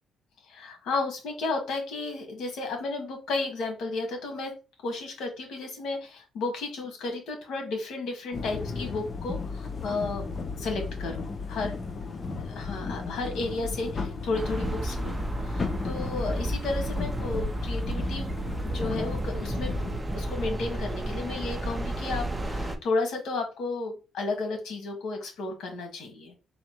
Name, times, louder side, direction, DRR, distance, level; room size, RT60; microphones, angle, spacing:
voice 1, 0.5-4.5 4.8-10.3 10.6-11.8 12.4-18.3 18.6-26.3, left 3 dB, 75° left, 3 dB, 1.6 m, -33 dB
sound 1, 8.3-20.0, left 4 dB, 35° left, 0.7 m, -35 dB
sound 2, 14.3-22.8, right 1 dB, 15° right, 0.7 m, -32 dB
4.1 x 2.4 x 4.4 m, 0.30 s
cardioid pair, 90°, 0 cm